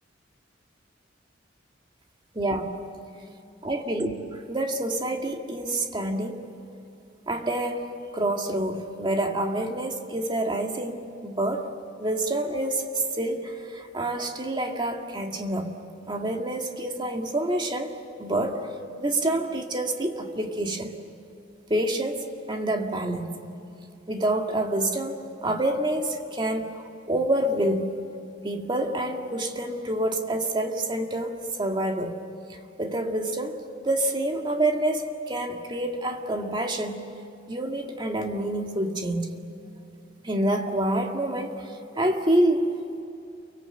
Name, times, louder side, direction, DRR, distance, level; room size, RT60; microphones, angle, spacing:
voice 1, 2.3-2.9 3.6-6.5 7.3-11.7 12.0-15.8 16.1-18.7 19.0-21.0 21.7-23.3 24.1-26.8 27.1-27.9 28.4-32.2 32.5-37.1 37.5-39.3 40.2-42.7, right 1 dB, 25° right, 2.0 m, -27 dB
29.5 x 24.0 x 7.9 m
head